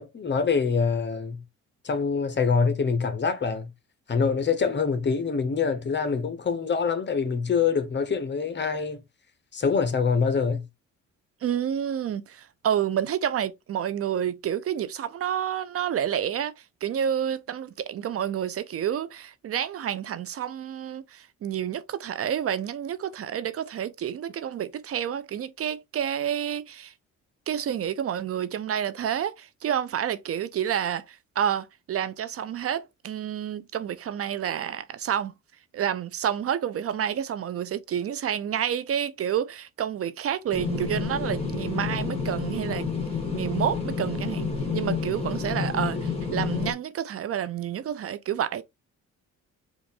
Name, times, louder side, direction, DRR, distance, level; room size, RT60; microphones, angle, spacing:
voice 1, 0.0-1.4 1.8-3.7 4.1-9.0 9.5-10.7, left 5 dB, 35° left, 1.0 m, -25 dB
voice 2, 11.4-26.9 27.5-35.3 35.7-42.9 43.3-48.6, right 9 dB, 50° right, 0.5 m, -29 dB
sound 1, 40.5-46.7, left 5 dB, 20° left, 1.8 m, -29 dB
5.0 x 2.5 x 3.6 m
cardioid pair, 90°, 30 cm